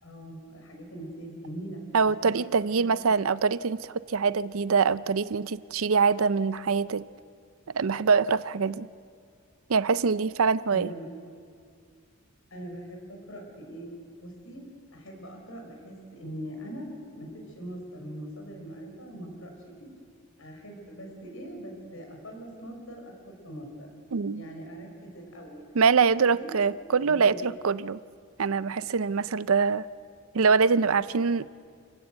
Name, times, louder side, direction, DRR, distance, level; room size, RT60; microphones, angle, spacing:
voice 1, 0.0-2.4 2.7-3.1 10.7-11.1 12.5-13.9 14.2-14.6 14.9-16.8 17.2-19.5 19.8-19.9 20.4-23.9 24.3-25.6 26.3-26.5 27.0-27.4, right 1 dB, 70° left, 2 dB, 5.7 m, -42 dB
voice 2, 1.9-7.0 7.7-8.9 9.7-10.9 24.1-24.4 25.7-28.0 28.4-29.9 30.3-31.5, right 5 dB, 75° right, 16 dB, 0.6 m, -24 dB
28.0 x 16.5 x 8.0 m, 2.2 s
head